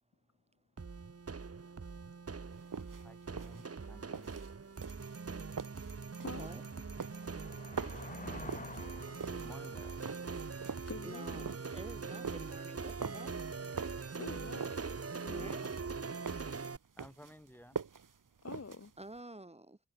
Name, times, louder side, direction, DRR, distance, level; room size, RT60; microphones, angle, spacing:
sound 1, 0.8-16.8, right 4 dB, 50° right, 1.4 m, -42 dB
sound 2, 2.6-19.2, right 6 dB, 80° right, 2.2 m, -45 dB
voice 1, 3.0-4.3 9.3-10.2 15.6-15.8 17.0-17.8, equal, 5° left, 7.5 m, -55 dB
sound 3, 4.6-4.7 5.2-11.8, left 3 dB, 25° left, 0.8 m, -52 dB
voice 2, 6.1-6.8 10.9-11.6 14.2-14.7 15.2-15.6 18.4-18.9, left 4 dB, 50° left, 2.3 m, -47 dB
voice 3, 11.0-13.3 15.3-15.6 19.0-19.8, right 2 dB, 20° right, 2.2 m, -48 dB
cardioid pair, 50°, 31 cm